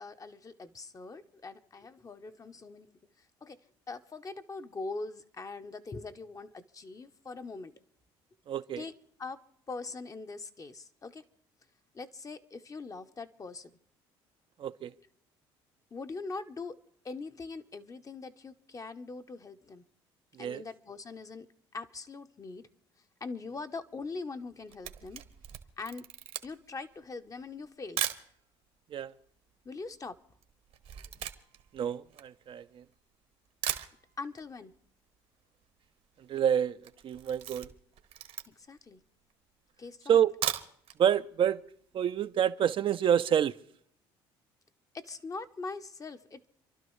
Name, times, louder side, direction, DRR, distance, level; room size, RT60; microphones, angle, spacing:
voice 1, 0.0-2.9 3.4-3.6 3.9-7.8 8.8-8.9 9.2-11.2 11.9-13.7 15.9-16.8 17.0-19.8 20.4-21.5 21.7-22.7 23.2-25.2 25.8-26.1 26.4-28.1 29.6-30.2 34.2-34.7 38.5-39.0 39.8-40.2 44.9-46.5, left 3 dB, 30° left, 0.9 m, -42 dB
voice 2, 8.5-8.8 14.6-14.9 20.4-20.6 28.9-29.1 31.7-32.8 36.3-36.8 37.0-37.7 40.1-40.3 41.0-41.6 41.9-43.5, right 9 dB, 50° right, 0.6 m, -27 dB
Camera, 24.4-28.3 29.0-29.1 29.3-32.9 33.3-33.4 33.6-34.5 34.7-34.8 35.1-35.2 35.4-35.9 36.2-36.4 36.8-38.8 39.3-39.4 40.2-41.0 41.3-41.4 41.8-41.9, right 10 dB, 65° right, 1.2 m, -38 dB
30.0 x 12.0 x 3.2 m
supercardioid pair, 70°, 11 cm